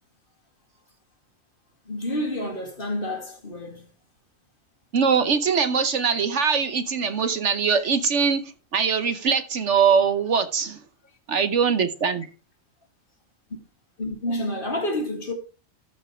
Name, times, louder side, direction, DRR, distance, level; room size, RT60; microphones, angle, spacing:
voice 1, 1.9-3.9 14.0-15.3, left 1 dB, 40° left, 2.5 m, -29 dB
voice 2, 4.9-8.4 8.7-10.8 11.3-12.3, right 6 dB, 60° right, 1.2 m, -22 dB
13.0 x 5.3 x 4.9 m
omnidirectional pair, 1.4 m